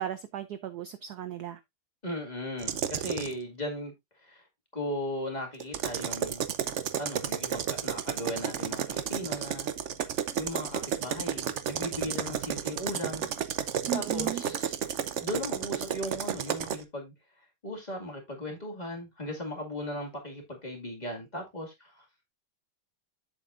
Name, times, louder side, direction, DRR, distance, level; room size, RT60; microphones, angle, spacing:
voice 1, 0.0-1.6 13.9-14.4, right 11 dB, 65° right, 1.0 m, -36 dB
voice 2, 2.0-3.9 4.2-4.4 4.7-6.4 7.0-9.7 10.4-13.3 13.9-14.8 15.2-22.1, left 1 dB, 20° left, 2.1 m, -37 dB
sound 1, 2.6-3.3 5.6-16.8, right 9 dB, 85° right, 0.6 m, -32 dB
8.2 x 7.5 x 2.5 m
omnidirectional pair, 2.2 m